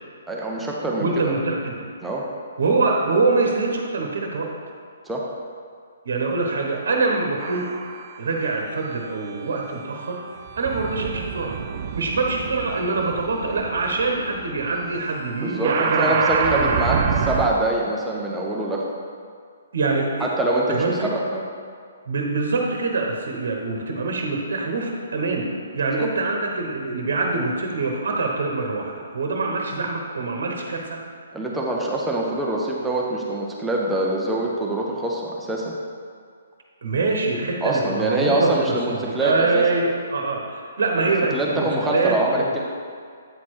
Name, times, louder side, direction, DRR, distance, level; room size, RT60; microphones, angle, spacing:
voice 1, 0.3-1.3 2.0-2.2 5.0-5.2 15.4-18.8 20.2-21.4 26.0-26.1 31.3-35.7 37.6-39.7 41.3-42.6, right 1 dB, 5° right, -3 dB, 0.8 m, -24 dB
voice 2, 1.0-1.8 2.6-4.5 6.0-7.7 8.2-10.2 10.5-11.6 11.9-16.7 19.7-20.3 20.7-21.1 22.1-25.5 25.7-31.0 36.8-42.6, right 3 dB, 65° right, 1 dB, 1.1 m, -24 dB
sound 1, 7.4-8.2 9.0-17.5, right 6 dB, 45° right, 0.5 m, -28 dB
8.5 x 4.3 x 4.7 m, 2.1 s
hypercardioid pair, 135°, 0 cm